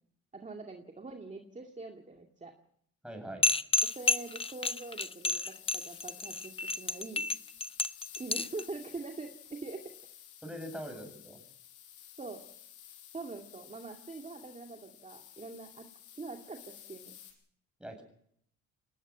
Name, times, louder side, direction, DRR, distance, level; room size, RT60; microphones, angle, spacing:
voice 1, 0.3-2.5 3.8-7.3 8.2-9.8 12.2-12.4 13.1-15.9 16.1-17.1, right 3 dB, 25° right, 3 dB, 2.2 m, -44 dB
voice 2, 3.0-3.5 10.4-11.4 17.8-18.0, equal, 5° right, 4 dB, 7.8 m, -42 dB
sound 1, 3.4-8.6, left 3 dB, 20° left, 0.8 m, -30 dB
sound 2, 3.8-17.3, left 10 dB, 85° left, 5.7 m, -53 dB
22.5 x 19.0 x 6.2 m, 0.68 s
cardioid pair, 90°, 30 cm